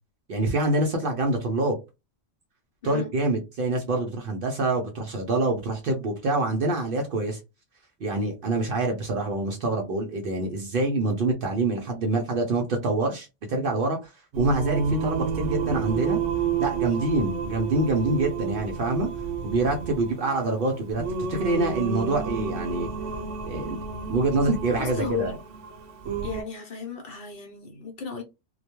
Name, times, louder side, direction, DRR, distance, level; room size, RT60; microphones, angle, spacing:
voice 1, 0.3-1.8 2.8-7.4 8.0-16.2 16.6-19.1 19.4-21.0 21.3-22.9 23.5-23.8 24.1-25.4, right 2 dB, 60° right, 0.6 m, -26 dB
Singing, 14.3-26.4, right 6 dB, 85° right, 0.9 m, -30 dB
voice 2, 24.8-25.3 26.2-28.2, left 5 dB, 55° left, 0.8 m, -34 dB
2.2 x 2.2 x 2.9 m
omnidirectional pair, 1.2 m